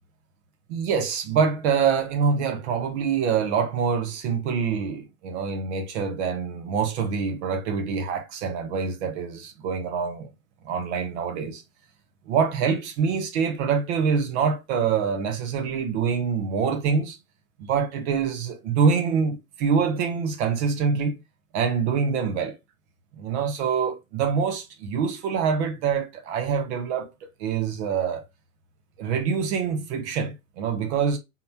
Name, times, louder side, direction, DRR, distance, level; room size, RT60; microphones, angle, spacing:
voice 1, 0.7-10.3 10.6-11.6 12.3-17.2 17.6-21.2 21.5-22.5 23.2-27.1 27.4-28.2 29.0-31.2, right 6 dB, 55° right, 1.4 m, -25 dB
4.1 x 3.9 x 2.8 m
figure-of-eight pair, 90°, 42 cm